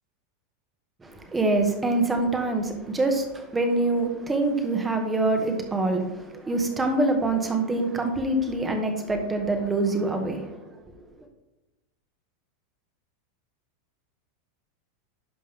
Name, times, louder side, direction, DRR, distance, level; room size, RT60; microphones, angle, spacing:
voice 1, 1.0-10.8, right 2 dB, 15° right, 4 dB, 1.6 m, -25 dB
11.0 x 5.3 x 3.6 m, 0.99 s
hypercardioid pair, 100°, 0 cm